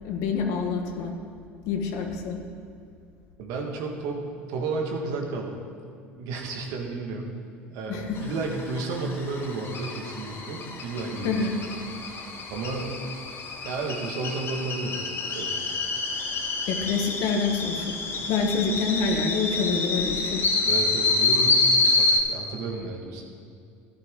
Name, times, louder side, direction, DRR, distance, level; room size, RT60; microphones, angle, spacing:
voice 1, 0.0-1.1 1.7-2.4 7.9-8.2 11.2-11.5 16.7-17.9 18.3-20.4, left 4 dB, 65° left, 3 dB, 1.6 m, -26 dB
voice 2, 3.4-5.7 6.2-7.3 7.7-11.6 12.5-13.0 13.7-15.6 18.1-18.2 20.6-23.2, right 3 dB, 65° right, 1 dB, 1.8 m, -32 dB
sound 1, 8.2-22.2, left 3 dB, 40° left, 1.6 m, -27 dB
13.5 x 10.5 x 3.8 m, 2.3 s
hypercardioid pair, 75°, 6 cm